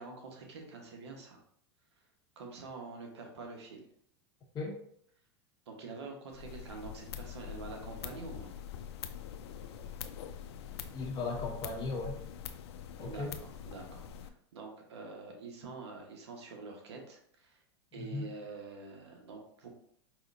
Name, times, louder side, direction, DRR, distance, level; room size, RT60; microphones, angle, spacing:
voice 1, 0.0-1.4 2.4-3.8 5.7-8.5 13.0-17.6 17.9-19.7, right 4 dB, 85° right, 2 dB, 1.2 m, -46 dB
sound 1, 6.3-14.3, left 9 dB, 75° left, 0.5 m, -44 dB
voice 2, 10.9-12.2 13.0-13.3 17.9-18.3, left 3 dB, 30° left, -2 dB, 1.4 m, -37 dB
4.8 x 3.2 x 2.6 m, 0.65 s
hypercardioid pair, 115°, 14 cm